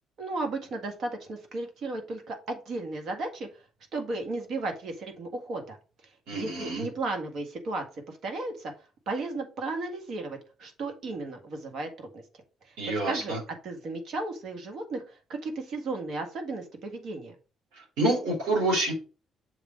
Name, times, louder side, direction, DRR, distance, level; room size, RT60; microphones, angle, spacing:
voice 1, 0.2-3.6 3.9-5.8 6.3-8.7 9.1-12.2 12.6-12.8 13.0-17.4, right 2 dB, 65° right, 5 dB, 1.7 m, -34 dB
voice 2, 6.3-6.9 12.8-13.4 18.0-18.9, right 2 dB, 85° right, 0 dB, 3.4 m, -27 dB
7.0 x 3.5 x 4.9 m, 0.35 s
supercardioid pair, 70°, 0 cm